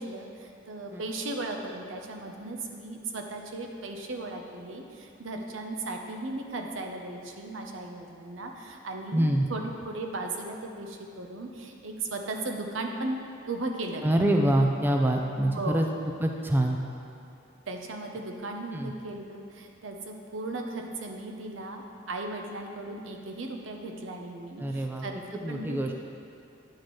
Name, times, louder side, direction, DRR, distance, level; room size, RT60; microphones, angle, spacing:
voice 1, 0.0-13.2 13.5-14.1 15.5-15.9 17.7-25.1 25.5-26.0, right 2 dB, 80° right, 3 dB, 0.7 m, -36 dB
voice 2, 9.1-9.5 14.0-15.9 16.2-16.8 18.7-18.9 24.6-25.0 25.4-26.0, right 1 dB, 10° right, 2 dB, 0.4 m, -25 dB
9.7 x 6.5 x 3.1 m, 2.6 s
head